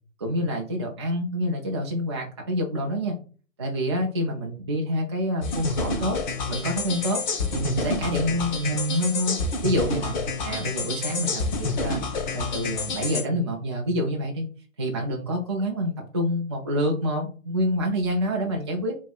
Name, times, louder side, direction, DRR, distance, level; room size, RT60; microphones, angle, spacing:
voice 1, 0.2-3.2 3.6-6.2 6.5-7.2 7.5-10.2 10.4-12.0 12.3-14.5 14.8-18.9, equal, 25° right, -1 dB, 0.4 m, -27 dB
sound 1, 5.4-13.2, left 3 dB, 35° left, 0.8 m, -28 dB
5.0 x 3.0 x 2.3 m, 0.38 s
figure-of-eight pair, 135°, 40 cm